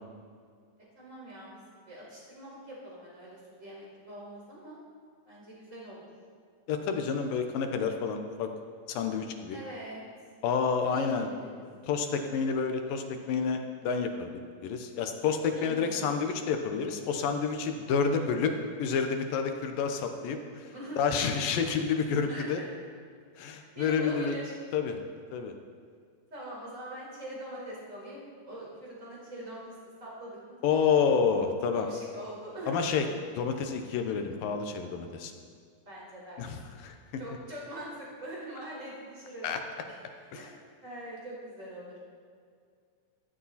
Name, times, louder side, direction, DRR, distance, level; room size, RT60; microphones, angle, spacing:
voice 1, 0.9-1.6 1.8-4.8 5.3-6.1 9.5-10.0 10.8-11.6 12.2-12.3 15.5-16.2 20.7-21.3 22.3-22.7 23.5-24.5 26.3-29.6 30.0-30.9 31.7-32.8 35.8-36.4 37.2-39.6 39.9-40.0 40.3-40.5 40.8-42.0, right 1 dB, 20° right, -5 dB, 4.9 m, -43 dB
voice 2, 6.7-8.5 8.9-9.6 10.4-11.3 11.8-18.5 18.8-22.6 23.4-24.4 24.7-25.0 25.3-25.5 30.6-31.9 32.7-33.0 33.3-35.3 36.4-37.0 39.4-39.6 40.3-40.5, left 6 dB, 70° left, 5 dB, 2.7 m, -29 dB
15.5 x 14.0 x 4.2 m, 2.1 s
omnidirectional pair, 4.3 m